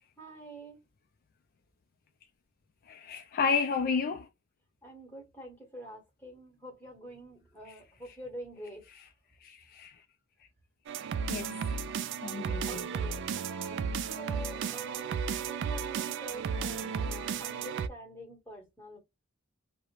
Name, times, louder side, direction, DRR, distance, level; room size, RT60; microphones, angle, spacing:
voice 1, 0.2-0.8 4.8-8.8 12.4-19.0, right 1 dB, 10° left, 1.3 m, -46 dB
voice 2, 2.9-4.2 9.8-9.9 11.3-11.5 12.2-12.8, left 5 dB, 50° left, 0.3 m, -30 dB
sound 1, 10.9-17.9, right 6 dB, 60° right, 0.3 m, -34 dB
2.4 x 2.1 x 3.0 m
head